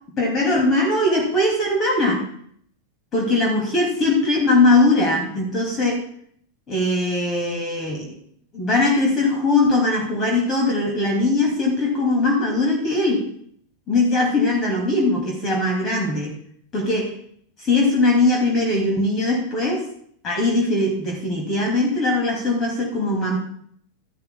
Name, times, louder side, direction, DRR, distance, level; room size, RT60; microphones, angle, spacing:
voice 1, 0.2-2.3 3.1-6.0 6.7-8.2 8.5-13.3 13.9-16.4 16.7-17.1 17.6-19.9 20.2-23.4, left 2 dB, 25° left, 0 dB, 2.5 m, -20 dB
13.0 x 11.5 x 2.2 m, 0.63 s
figure-of-eight pair, 90°, 0 cm